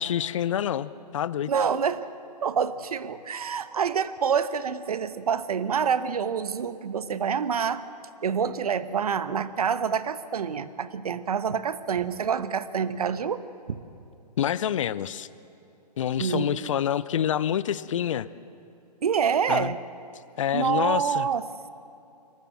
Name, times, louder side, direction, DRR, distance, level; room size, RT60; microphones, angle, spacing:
voice 1, 0.0-1.5 14.4-15.3 16.0-18.3 19.5-19.7 20.4-21.3, left 10 dB, 50° left, 18 dB, 0.7 m, -27 dB
voice 2, 1.5-2.1 2.4-7.8 8.2-13.8 16.2-16.8 19.0-19.8 20.5-21.5, right 7 dB, 60° right, 14 dB, 1.1 m, -27 dB
23.0 x 19.5 x 7.6 m, 2.6 s
figure-of-eight pair, 125°, 21 cm